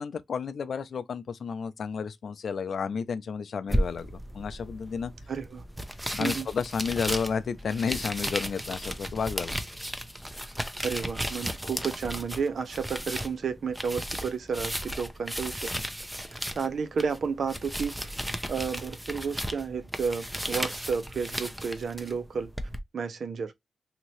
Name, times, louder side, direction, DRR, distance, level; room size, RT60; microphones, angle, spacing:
voice 1, 0.0-5.1 6.1-9.6, left 6 dB, 75° left, 0.4 m, -32 dB
sound 1, 3.7-22.8, equal, 5° right, 0.6 m, -35 dB
voice 2, 5.3-5.6 6.2-6.5 10.8-15.7 16.3-18.2 18.5-22.5 22.9-23.5, right 5 dB, 70° right, 0.5 m, -32 dB
2.9 x 2.6 x 3.0 m
cardioid pair, 60°, 0 cm